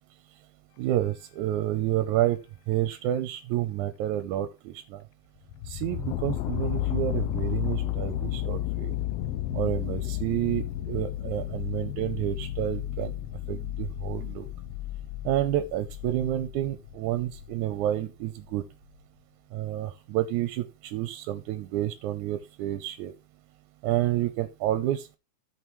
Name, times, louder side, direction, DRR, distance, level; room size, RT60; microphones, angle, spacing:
voice 1, 0.8-2.4 2.7-5.0 5.7-8.9 9.5-13.1 13.5-14.5 15.3-18.6 19.5-23.1 23.8-25.2, right 13 dB, 80° right, 11 dB, 2.0 m, -29 dB
sound 1, 5.5-17.9 18.5-18.6, left 13 dB, 85° left, 1.4 m, -32 dB
15.5 x 5.4 x 3.1 m, 0.27 s
omnidirectional pair, 3.5 m